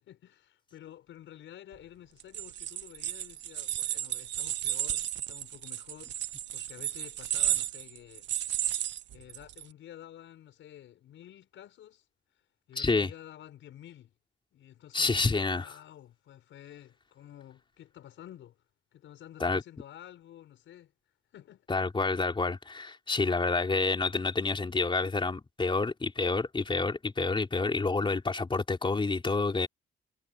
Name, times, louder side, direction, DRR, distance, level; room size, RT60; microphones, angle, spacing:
voice 1, 0.0-6.3 6.5-8.3 8.9-12.4 12.7-14.1 14.5-18.6 18.9-20.9 21.3-21.7, left 11 dB, 75° left, 5.8 m, -51 dB
sound 1, 2.2-9.6, right 12 dB, 65° right, 0.7 m, -33 dB
voice 2, 12.8-13.1 14.9-15.7 19.4-19.6 21.7-29.7, left 3 dB, 25° left, 3.8 m, -28 dB
cardioid pair, 90°, 20 cm